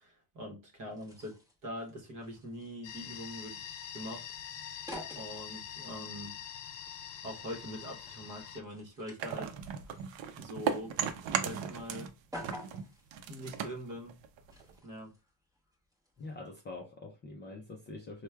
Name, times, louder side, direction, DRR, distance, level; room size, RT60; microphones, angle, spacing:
voice 1, 0.0-4.3 5.1-6.4 7.2-9.5 10.4-10.9 11.4-12.1 13.3-14.2 14.8-15.1, equal, 40° right, 0.9 m, -43 dB
sound 1, 0.9-16.4, left 1 dB, 10° right, 0.8 m, -52 dB
sound 2, 2.8-8.6, left 9 dB, 65° left, 0.6 m, -44 dB
sound 3, 9.2-12.1 12.4-14.8, right 8 dB, 70° right, 0.6 m, -36 dB
voice 2, 16.2-18.2, left 3 dB, 25° left, 0.3 m, -45 dB
4.5 x 2.2 x 2.2 m
cardioid pair, 160°, 47 cm